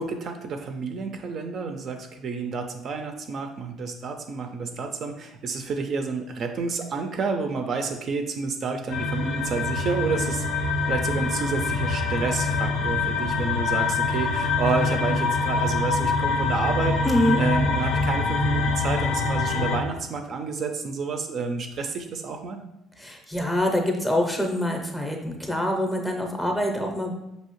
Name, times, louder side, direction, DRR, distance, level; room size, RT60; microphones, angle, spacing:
voice 1, 0.0-17.0 17.4-22.6, right 4 dB, 40° right, 5 dB, 0.3 m, -30 dB
sound 1, 8.9-19.8, left 4 dB, 90° left, 0.6 m, -25 dB
voice 2, 17.0-17.4 23.0-27.1, left 1 dB, 10° left, 2 dB, 0.5 m, -25 dB
5.4 x 2.7 x 3.0 m, 0.86 s
cardioid pair, 150°, 0 cm